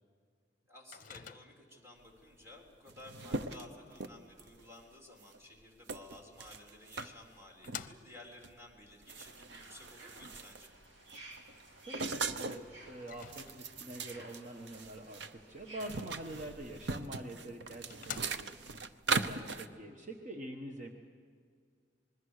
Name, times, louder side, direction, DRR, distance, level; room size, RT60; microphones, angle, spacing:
voice 1, 0.7-10.7, left 2 dB, 15° right, 0 dB, 3.8 m, -54 dB
Microwave oven, 0.9-1.8 6.2-6.3 7.0-8.4 13.0-13.9 17.0-17.1 17.5-17.6 17.9-18.8, left 8 dB, 45° left, 0.7 m, -48 dB
sound 1, 2.4-2.5 2.7-4.6 5.2-5.4 5.9-7.1 7.6-7.9 8.4-8.6 8.9-10.8 11.1-12.7 13.1-15.3 15.6-19.7, right 4 dB, 65° right, 0.9 m, -39 dB
sound 2, 9.2-16.5, right 2 dB, 85° right, 3.0 m, -55 dB
voice 2, 11.8-18.6 19.1-20.9, right 1 dB, 45° right, 3 dB, 1.3 m, -45 dB
26.5 x 21.0 x 6.6 m, 2.1 s
head